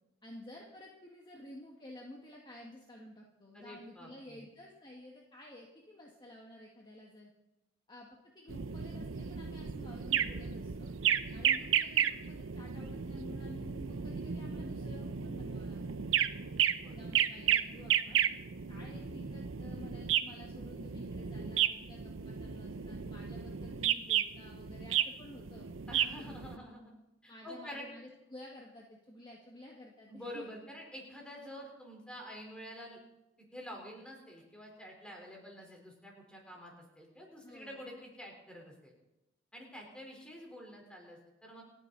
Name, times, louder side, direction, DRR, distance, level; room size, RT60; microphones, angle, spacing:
voice 1, 0.2-7.3 7.9-8.1 8.3-10.9 11.3-16.0 16.9-18.3 18.7-25.7 26.2-26.7 27.3-30.5 37.4-37.9, left 1 dB, 25° left, -2 dB, 1.9 m, -52 dB
voice 2, 3.5-4.5 11.5-11.7 16.8-17.1 18.7-19.3 25.9-26.9 27.2-27.9 30.1-33.0 33.5-38.9 39.5-41.6, equal, 5° left, 0 dB, 4.2 m, -48 dB
sound 1, 8.5-26.6, right 9 dB, 85° right, 0.7 m, -33 dB
29.0 x 10.0 x 4.1 m, 0.93 s
head